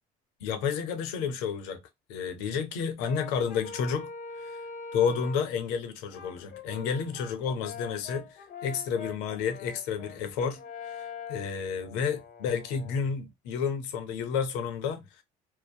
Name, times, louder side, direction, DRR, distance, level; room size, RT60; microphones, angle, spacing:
voice 1, 0.4-1.8 2.1-4.1 4.4-4.6 4.9-10.6 10.9-15.0, left 6 dB, 90° left, 0.6 m, -31 dB
Brass instrument, 3.0-5.5 6.1-13.1, left 5 dB, 50° left, 0.7 m, -43 dB
2.7 x 2.1 x 2.3 m
supercardioid pair, 90°, 17 cm